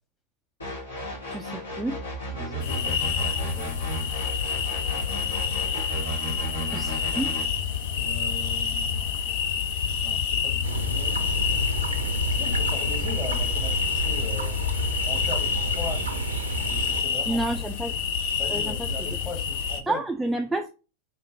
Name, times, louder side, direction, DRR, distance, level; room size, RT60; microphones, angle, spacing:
sound 1, 0.6-7.4, right 2 dB, 75° left, 2.0 m, -35 dB
voice 1, 1.3-2.0 6.7-7.3 17.3-17.9 18.5-18.7 19.9-20.7, right 2 dB, 5° right, 0.4 m, -29 dB
voice 2, 2.3-3.7 8.0-9.0 10.0-11.3 12.4-14.5 15.0-16.2 16.7-17.5 18.4-20.0, left 3 dB, 15° left, 1.3 m, -39 dB
sound 2, 2.6-19.8, left 7 dB, 50° left, 0.6 m, -28 dB
Griffey Park Stream and Birds (noisy), 10.6-17.0, right 5 dB, 70° right, 0.5 m, -32 dB
4.3 x 3.7 x 2.7 m
figure-of-eight pair, 90°, 0 cm